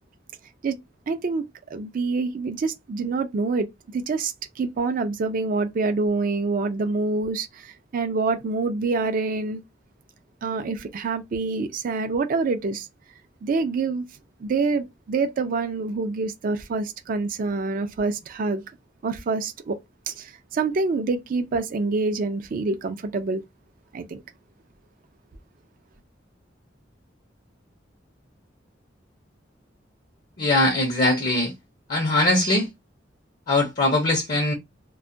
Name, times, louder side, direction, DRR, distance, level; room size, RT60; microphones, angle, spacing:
voice 1, 1.1-3.7 3.9-9.6 10.4-12.9 13.4-14.1 14.4-18.6 19.0-19.8 20.1-23.4 23.9-24.2, right 3 dB, 50° right, 0.4 m, -26 dB
voice 2, 30.4-31.5 31.9-32.7 33.5-34.5, left 2 dB, 45° left, 0.6 m, -21 dB
2.2 x 2.1 x 2.6 m
head